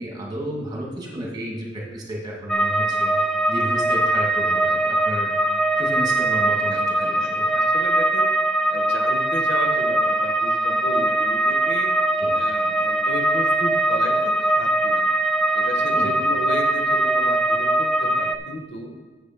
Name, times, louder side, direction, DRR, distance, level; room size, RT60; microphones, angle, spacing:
voice 1, 0.0-3.1 3.5-5.3 5.8-7.5 12.2-12.3 15.9-16.1, right 1 dB, 20° right, -2 dB, 2.1 m, -32 dB
sound 1, 2.5-18.4, right 1 dB, 5° left, 0.4 m, -21 dB
voice 2, 6.7-8.3 8.7-12.0 12.3-15.1 15.5-18.9, left 1 dB, 65° left, 3 dB, 1.2 m, -34 dB
7.2 x 6.6 x 6.0 m, 1.4 s
head